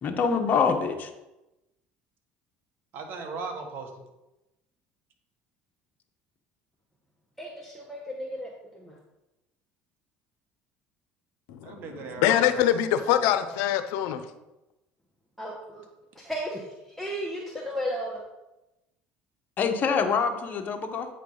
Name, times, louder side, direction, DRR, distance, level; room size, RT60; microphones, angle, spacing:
voice 1, 0.0-1.1 19.6-21.1, left 5 dB, 45° left, 0.9 m, -25 dB
voice 2, 2.9-3.9 11.6-12.7 13.0-13.3, right 4 dB, 60° right, 1.4 m, -38 dB
voice 3, 7.4-9.0 15.4-15.9 16.1-18.2, equal, 5° left, 1.1 m, -35 dB
voice 4, 12.2-14.2, left 11 dB, 80° left, 0.6 m, -24 dB
8.3 x 3.3 x 5.4 m
supercardioid pair, 100°, 4 cm